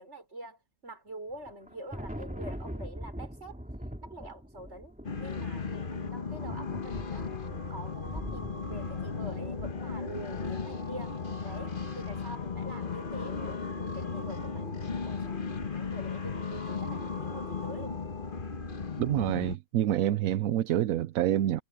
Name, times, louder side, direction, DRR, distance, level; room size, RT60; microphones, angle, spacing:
voice 1, 0.0-3.6 4.0-7.3 7.7-11.1 11.4-15.4 15.7-18.1, right 1 dB, 55° right, 5.7 m, -46 dB
Thunder, 1.3-10.7, equal, 5° right, 3.0 m, -42 dB
sound 1, 5.0-19.6, left 5 dB, 40° left, 1.5 m, -36 dB
voice 2, 19.0-21.6, right 12 dB, 80° right, 1.0 m, -27 dB
omnidirectional pair, 1.5 m